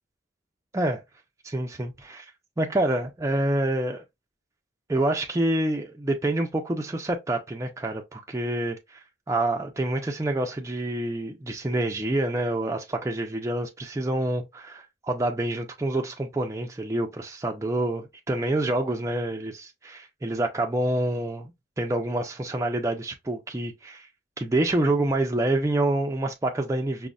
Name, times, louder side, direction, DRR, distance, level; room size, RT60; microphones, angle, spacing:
voice 1, 1.4-2.3 2.6-4.0 4.9-9.0 9.3-21.5 21.8-24.1 24.4-27.1, right 1 dB, 15° right, 0.4 m, -27 dB
5.1 x 2.1 x 2.3 m
head